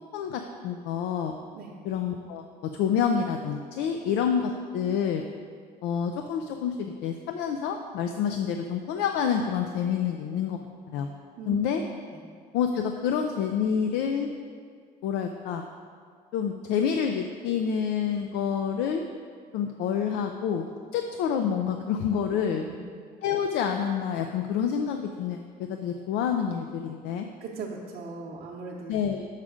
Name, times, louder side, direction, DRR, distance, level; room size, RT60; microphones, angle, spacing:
voice 1, 0.1-1.4 1.8-2.5 2.7-5.2 5.8-10.6 10.9-11.1 11.5-11.8 12.5-14.3 15.0-15.7 16.3-19.0 19.5-20.7 20.9-22.7 23.2-27.3 28.9-29.3, left 7 dB, 90° left, 5 dB, 0.4 m, -28 dB
voice 2, 11.4-11.7 22.3-22.4 22.6-22.8 27.4-28.9, right 4 dB, 65° right, -5 dB, 0.8 m, -38 dB
6.1 x 5.7 x 4.9 m, 2.1 s
cardioid pair, 110°, 17 cm